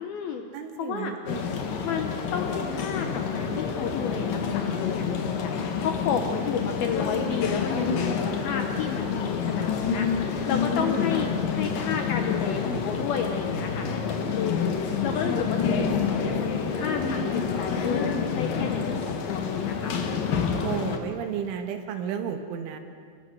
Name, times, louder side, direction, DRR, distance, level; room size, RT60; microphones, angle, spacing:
voice 1, 0.0-0.5 0.8-1.1 1.8-5.5 5.8-10.1 10.5-14.7 15.0-19.9, left 7 dB, 85° left, 5 dB, 2.1 m, -32 dB
voice 2, 0.5-1.5 20.6-22.8, right 8 dB, 75° right, 6 dB, 3.9 m, -33 dB
sound 1, 1.3-21.0, left 6 dB, 60° left, 2.6 m, -28 dB
29.5 x 21.5 x 6.6 m, 2.1 s
omnidirectional pair, 5.9 m